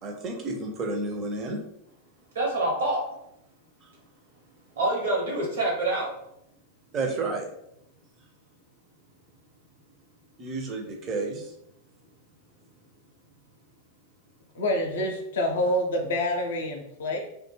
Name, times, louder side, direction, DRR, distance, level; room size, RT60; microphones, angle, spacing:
voice 1, 0.0-1.6 6.9-7.5 10.4-11.5, right 3 dB, 30° right, 2 dB, 0.5 m, -31 dB
voice 2, 2.3-3.0 4.8-6.1 15.0-15.1, right 2 dB, 65° right, -1 dB, 0.8 m, -26 dB
voice 3, 14.6-17.2, left 1 dB, 60° left, 2 dB, 0.5 m, -27 dB
2.1 x 2.0 x 3.1 m, 0.78 s
figure-of-eight pair, 90°, 0 cm